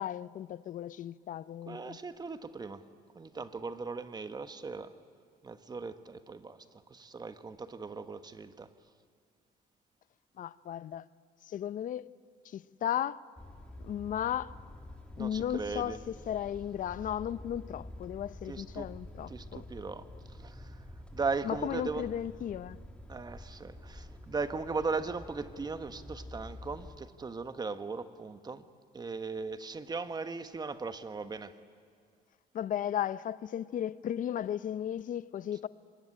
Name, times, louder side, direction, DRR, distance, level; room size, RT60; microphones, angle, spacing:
voice 1, 0.0-2.0 10.4-11.1 11.5-12.1 12.4-13.2 13.8-14.5 15.2-19.7 21.4-22.8 32.5-35.7, left 10 dB, 50° left, 0.7 m, -35 dB
voice 2, 1.7-2.8 3.1-4.9 5.4-6.6 6.9-8.7 15.2-16.0 18.5-18.9 19.3-20.8 21.1-22.1 23.1-28.7 28.9-31.5, right 4 dB, 25° right, 1.3 m, -38 dB
sound 1, 13.4-27.0, left 1 dB, 5° left, 2.3 m, -48 dB
25.0 x 21.0 x 9.9 m
cardioid pair, 110°, 17 cm